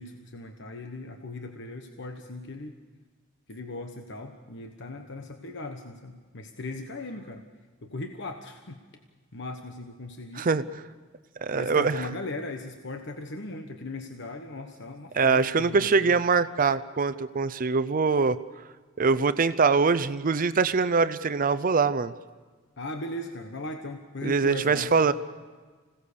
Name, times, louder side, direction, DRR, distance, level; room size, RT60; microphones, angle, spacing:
voice 1, 0.0-2.8 3.5-7.4 7.8-8.8 9.3-10.5 11.5-16.1 22.8-24.9, left 2 dB, 60° left, 5 dB, 1.2 m, -38 dB
voice 2, 10.4-10.8 11.4-11.9 15.1-18.4 19.0-22.1 24.2-25.1, right 4 dB, 40° right, 13 dB, 0.6 m, -23 dB
26.0 x 17.5 x 6.8 m, 1.4 s
head